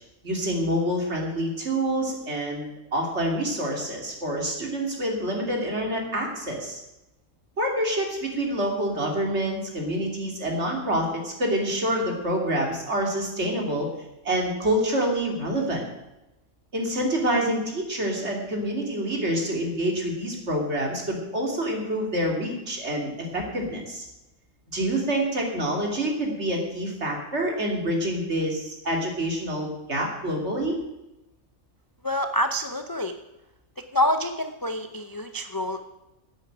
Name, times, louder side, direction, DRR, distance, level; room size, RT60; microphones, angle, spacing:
voice 1, 0.2-6.8 7.6-13.9 14.2-15.8 16.7-24.0 24.7-30.8, right 1 dB, 50° right, 1 dB, 3.1 m, -27 dB
voice 2, 32.0-33.1 33.9-35.8, left 1 dB, 25° left, 7 dB, 0.5 m, -26 dB
11.0 x 8.3 x 8.9 m, 0.94 s
omnidirectional pair, 1.5 m